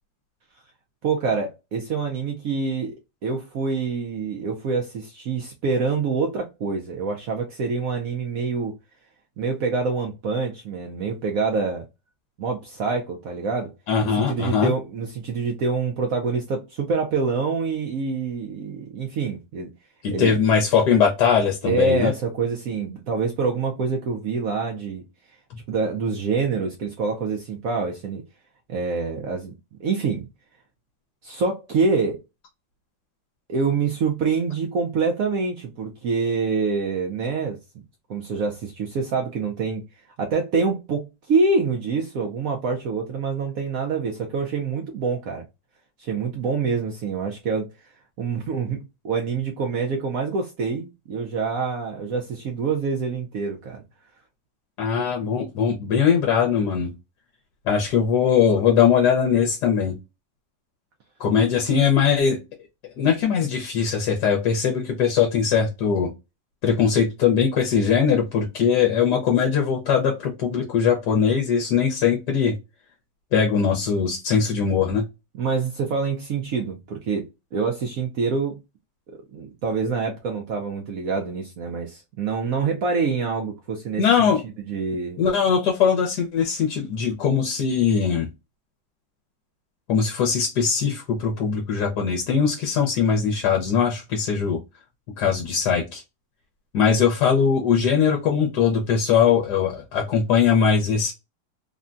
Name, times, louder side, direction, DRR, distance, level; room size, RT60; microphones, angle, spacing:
voice 1, 1.0-2.9 3.2-8.7 9.4-11.9 12.4-13.7 14.2-19.7 20.1-20.4 21.6-25.0 25.7-28.2 28.7-29.5 29.8-30.3 31.2-32.2 33.5-37.6 38.1-39.8 40.2-45.4 46.0-47.7 48.2-48.8 49.0-53.8 75.3-77.3 77.5-78.6 79.1-84.3 84.7-85.2, right 4 dB, 70° right, 0.8 m, -26 dB
voice 2, 13.9-14.7 20.0-22.1 25.5-25.6 54.8-56.9 57.7-60.0 61.2-62.4 63.0-66.1 66.6-72.5 73.3-75.1 84.0-84.4 85.2-88.3 89.9-94.6 95.2-96.0 96.7-101.1, left 7 dB, 70° left, 1.2 m, -21 dB
3.6 x 2.1 x 2.5 m
omnidirectional pair, 2.0 m